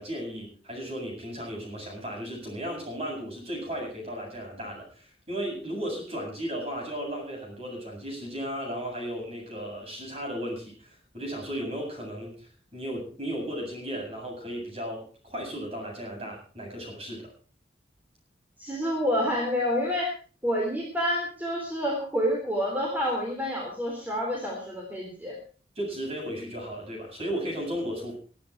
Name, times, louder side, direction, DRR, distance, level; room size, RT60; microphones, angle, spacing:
voice 1, 0.0-17.3 25.8-28.2, equal, 35° right, 0 dB, 8.0 m, -35 dB
voice 2, 18.6-20.1 20.4-25.4, equal, 10° right, -1 dB, 3.7 m, -28 dB
21.5 x 10.0 x 4.7 m, 0.38 s
head